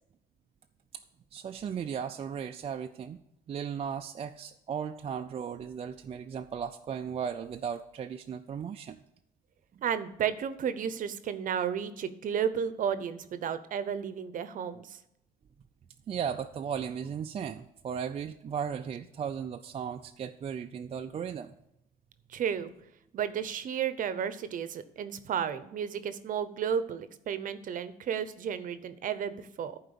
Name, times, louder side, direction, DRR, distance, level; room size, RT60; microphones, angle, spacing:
voice 1, 1.3-3.2 3.5-9.0 16.1-21.5, right 7 dB, 35° right, 5 dB, 0.5 m, -36 dB
voice 2, 9.8-15.0 22.3-22.7 23.1-29.8, right 8 dB, 50° right, 13 dB, 0.8 m, -33 dB
11.0 x 4.6 x 6.9 m, 0.81 s
cardioid pair, 110°, 17 cm